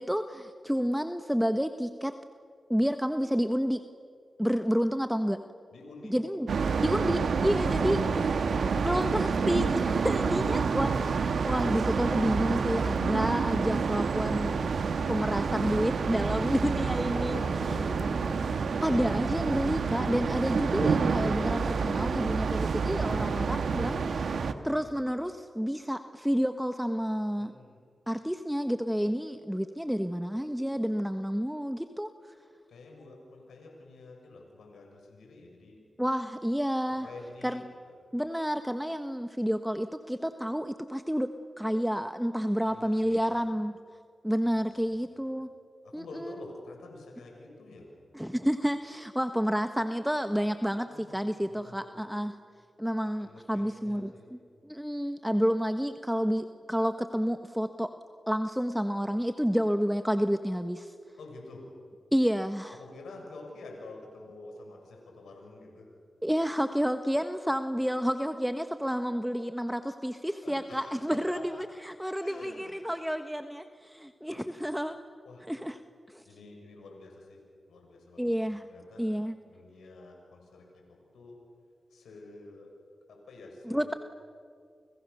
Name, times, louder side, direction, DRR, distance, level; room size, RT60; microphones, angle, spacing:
voice 1, 0.0-2.1 2.7-3.8 4.4-5.4 6.1-6.5 6.8-8.0 8.7-14.7 15.1-17.4 18.8-24.3 24.6-27.5 28.1-32.1 36.0-37.1 37.4-37.6 38.1-41.3 41.6-43.8 44.2-45.5 45.9-46.3 48.1-52.4 52.8-54.4 54.6-57.9 58.3-60.9 62.1-62.8 66.2-75.0 75.5-75.8 76.1-76.2 78.2-78.7 79.0-79.4 83.7-83.9, equal, 5° right, 8 dB, 1.3 m, -30 dB
voice 2, 5.7-6.2 7.4-8.4 16.9-18.4 27.4-27.8 32.7-36.1 36.9-37.9 42.6-43.7 44.5-45.2 45.8-47.9 50.8-51.2 51.5-52.0 53.0-54.3 61.2-61.6 62.7-65.9 70.4-71.7 72.2-72.7 74.3-74.5 75.2-75.5 76.2-77.4 77.7-79.1 79.4-81.4 81.9-82.7 83.1-84.0, left 2 dB, 90° left, 1 dB, 6.6 m, -48 dB
sound 1, 6.5-24.5, right 5 dB, 75° right, 1.5 m, -28 dB
29.5 x 29.0 x 6.8 m, 2.2 s
cardioid pair, 40°, 0 cm